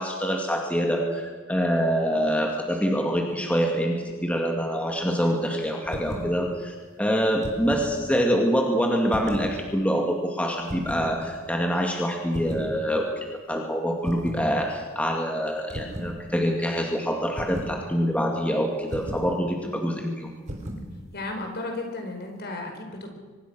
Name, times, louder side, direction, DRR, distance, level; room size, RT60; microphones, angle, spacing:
voice 1, 0.0-4.0 4.2-13.1 13.5-20.3, equal, 5° left, 1 dB, 2.3 m, -25 dB
voice 2, 5.2-5.9 21.1-23.1, left 2 dB, 50° left, 4 dB, 4.9 m, -35 dB
sound 1, 5.8-6.3 7.2-7.9 9.1-9.6 10.6-11.1 12.3-12.7 14.0-14.5 15.7-16.2 17.4-17.8 18.9-19.3 20.5-20.9, equal, 35° right, 4.1 m, -34 dB
24.5 x 21.0 x 6.4 m, 1.5 s
head